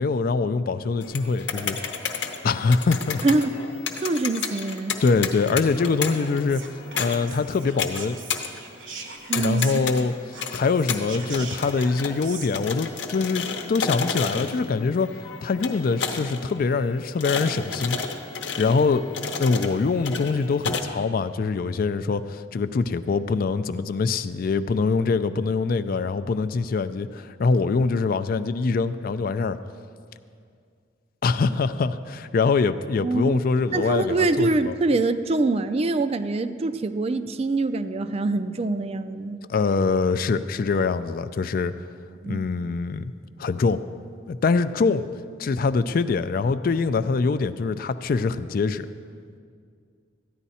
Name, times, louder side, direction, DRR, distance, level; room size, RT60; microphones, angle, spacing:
voice 1, 0.0-1.8 2.4-3.2 5.0-6.6 6.9-8.2 9.4-10.1 10.5-15.1 15.4-18.0 18.6-19.0 19.4-29.6 31.2-34.7 39.5-41.7 42.3-43.1 43.4-43.8 44.3-45.1 45.4-48.9, left 4 dB, 50° left, 12 dB, 0.3 m, -24 dB
sound 1, 1.0-20.8, left 5 dB, 70° left, 0.9 m, -32 dB
voice 2, 3.2-3.6 4.0-4.9 9.3-9.9 33.0-33.4 33.7-39.4 42.2-42.5, right 3 dB, 35° right, 10 dB, 0.4 m, -24 dB
Whispering, 6.5-10.0 10.3-12.5, right 5 dB, 80° right, 1.1 m, -41 dB
14.0 x 10.0 x 4.2 m, 2.2 s
head